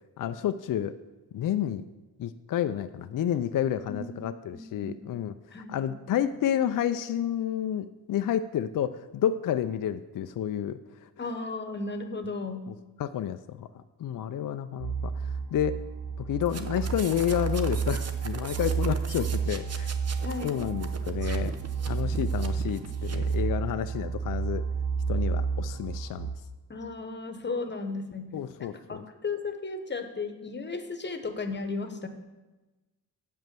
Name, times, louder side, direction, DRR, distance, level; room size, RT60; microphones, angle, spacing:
voice 1, 0.2-1.0 1.3-1.8 2.2-11.1 12.7-15.8 16.2-19.9 20.4-21.5 21.9-24.6 25.1-26.3 28.3-29.0, left 10 dB, 50° left, 10 dB, 0.5 m, -30 dB
voice 2, 3.9-5.0 5.5-6.0 11.2-12.6 20.2-20.6 26.7-28.3 28.6-32.1, left 3 dB, 25° left, 8 dB, 1.1 m, -35 dB
sound 1, 14.8-26.3, right 5 dB, 65° right, 1.6 m, -31 dB
sound 2, 16.4-23.4, right 4 dB, 40° right, 1.0 m, -41 dB
7.8 x 5.4 x 7.5 m, 1.1 s
cardioid pair, 85°, 41 cm